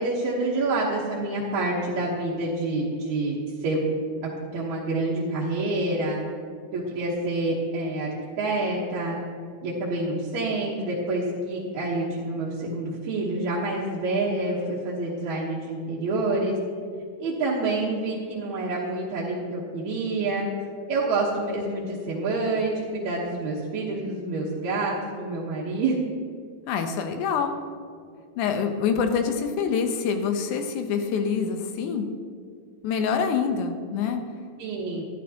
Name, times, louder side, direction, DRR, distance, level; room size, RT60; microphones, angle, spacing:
voice 1, 0.0-3.9 4.2-6.2 6.7-9.2 9.6-16.6 17.2-20.4 20.9-26.0 34.6-35.0, right 2 dB, 65° right, -7 dB, 2.3 m, -27 dB
voice 2, 26.7-27.6 28.4-32.1 32.8-34.2, left 6 dB, 75° left, 6 dB, 2.1 m, -26 dB
12.0 x 11.5 x 2.8 m, 2.2 s
omnidirectional pair, 3.9 m